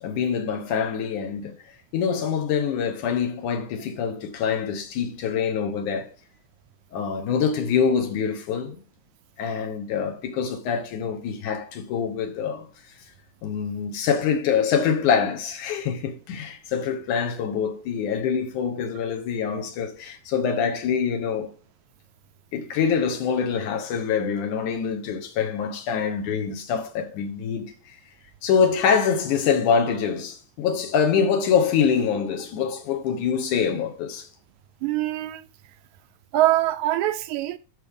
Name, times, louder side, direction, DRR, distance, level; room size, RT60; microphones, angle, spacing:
voice 1, 0.0-1.5 1.9-6.1 6.9-8.8 9.4-12.7 13.4-21.5 22.5-28.0 28.4-34.3, left 7 dB, 80° left, 2.6 m, -25 dB
voice 2, 34.8-35.4 36.3-37.6, right 14 dB, 80° right, 1.8 m, -23 dB
11.0 x 6.5 x 3.6 m
omnidirectional pair, 3.5 m